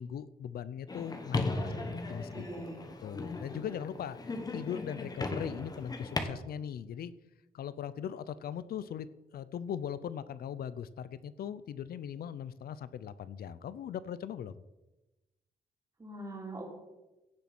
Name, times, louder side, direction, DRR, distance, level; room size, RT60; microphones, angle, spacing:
voice 1, 0.0-1.7 2.1-2.5 3.0-4.2 4.5-7.1 7.5-9.1 9.3-14.6, left 9 dB, 80° left, 16 dB, 0.7 m, -39 dB
Wildtrack Prison, 0.9-6.2, left 2 dB, 25° left, 1.4 m, -37 dB
voice 2, 1.4-2.8 16.0-16.7, right 2 dB, 20° right, 0 dB, 3.9 m, -44 dB
16.5 x 7.1 x 6.1 m, 1.0 s
wide cardioid pair, 140°, 16 cm